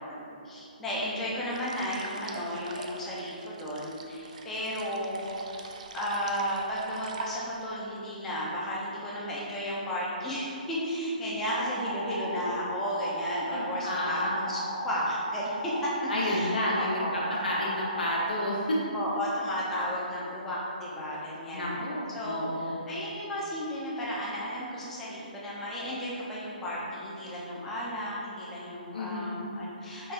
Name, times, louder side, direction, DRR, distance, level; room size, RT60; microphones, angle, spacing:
voice 1, 0.0-5.6 5.9-17.4 18.9-30.1, equal, 5° left, -7 dB, 0.7 m, -34 dB
sound 1, 1.5-7.7, right 4 dB, 50° right, 0.4 m, -43 dB
sound 2, 11.5-18.3, right 1 dB, 25° right, 0.9 m, -36 dB
voice 2, 13.5-14.4 16.1-18.8 21.5-22.8 28.9-29.3, left 1 dB, 75° left, -4 dB, 1.1 m, -30 dB
5.8 x 2.6 x 3.3 m, 2.6 s
hypercardioid pair, 160°, 5 cm